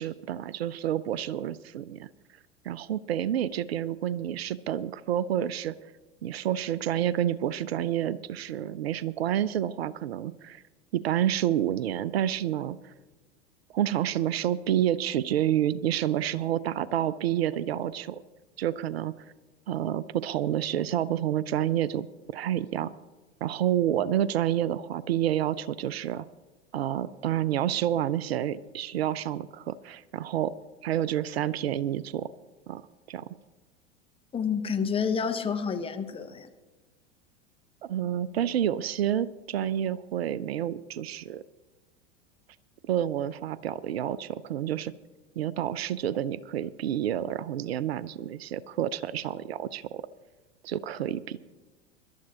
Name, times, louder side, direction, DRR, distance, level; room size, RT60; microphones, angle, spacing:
voice 1, 0.0-2.1 2.6-5.7 6.2-10.6 10.9-12.9 13.7-18.2 18.6-19.1 19.7-22.9 23.4-26.3 26.7-30.5 30.8-32.3 32.7-32.8 33.1-33.3 37.8-41.4 42.9-44.9 45.4-50.0 50.6-51.4, right 11 dB, 60° right, 19 dB, 0.5 m, -29 dB
voice 2, 34.3-36.5, left 6 dB, 15° left, 6 dB, 0.9 m, -29 dB
24.5 x 12.5 x 2.9 m, 1.2 s
figure-of-eight pair, 85°, 36 cm